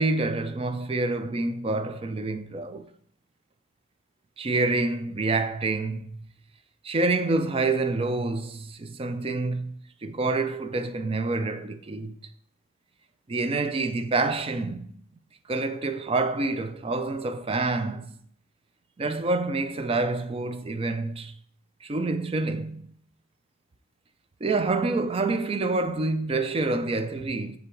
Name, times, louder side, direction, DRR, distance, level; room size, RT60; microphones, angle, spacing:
voice 1, 0.0-2.9 4.4-6.3 6.8-12.1 13.3-14.9 15.5-18.2 19.0-21.4 21.8-22.9 24.4-27.6, right 3 dB, 25° right, 0.4 m, -27 dB
6.8 x 3.9 x 4.4 m
head